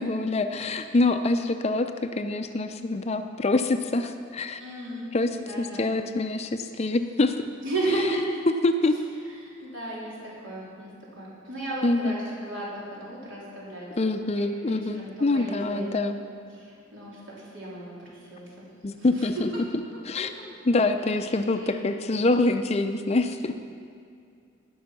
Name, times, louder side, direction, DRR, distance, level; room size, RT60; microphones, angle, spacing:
voice 1, 0.0-4.6 5.1-7.4 7.9-8.1 8.6-9.0 9.6-9.7 11.8-12.2 14.0-16.2 18.8-19.5 20.0-23.6, left 2 dB, 30° left, 8 dB, 0.5 m, -25 dB
voice 2, 4.6-5.9 7.6-8.3 9.4-10.9 11.2-12.2 12.5-14.3 14.6-15.9 16.6-17.9 18.3-18.5 19.0-19.3, right 2 dB, 70° right, -6 dB, 3.8 m, -34 dB
18.5 x 6.3 x 5.9 m, 2.4 s
head